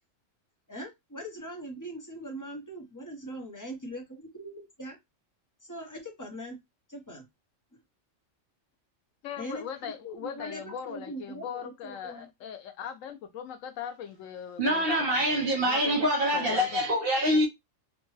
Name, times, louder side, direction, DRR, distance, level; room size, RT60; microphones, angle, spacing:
voice 1, 0.7-5.0 5.6-6.6 6.9-7.3 9.4-12.3, equal, 20° left, 0.8 m, -41 dB
voice 2, 9.2-16.1 16.3-16.8, left 8 dB, 90° left, 1.0 m, -40 dB
voice 3, 14.6-17.5, equal, 50° right, 1.1 m, -25 dB
3.3 x 2.2 x 3.1 m
omnidirectional pair, 1.3 m